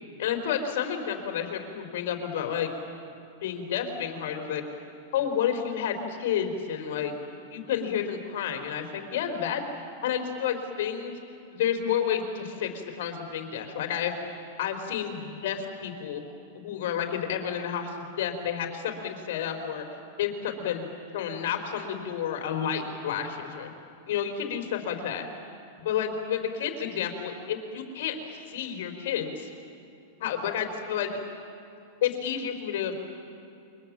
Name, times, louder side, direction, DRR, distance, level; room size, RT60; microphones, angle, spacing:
voice 1, 0.2-2.7 3.4-4.6 5.1-7.1 7.5-9.6 10.0-11.1 11.5-14.1 14.6-16.2 16.5-19.8 20.2-23.7 24.1-25.2 25.8-28.2 28.5-29.5 30.2-31.1 32.0-33.0, left 8 dB, 70° left, 5 dB, 4.1 m, -30 dB
28.5 x 24.5 x 7.5 m, 2.6 s
hypercardioid pair, 130°, 0 cm